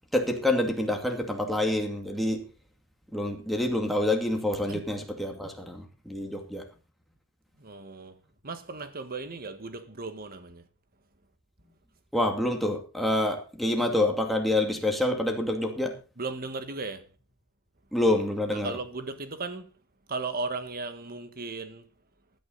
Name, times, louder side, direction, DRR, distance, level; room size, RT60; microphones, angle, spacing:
voice 1, 0.1-2.4 3.1-6.6 12.1-15.9 17.9-18.7, left 1 dB, ahead, 2.4 m, -27 dB
voice 2, 7.6-8.1 8.4-10.7 16.2-17.1 18.5-19.6 20.1-21.9, right 3 dB, 45° right, 1.5 m, -36 dB
15.5 x 11.0 x 4.0 m
head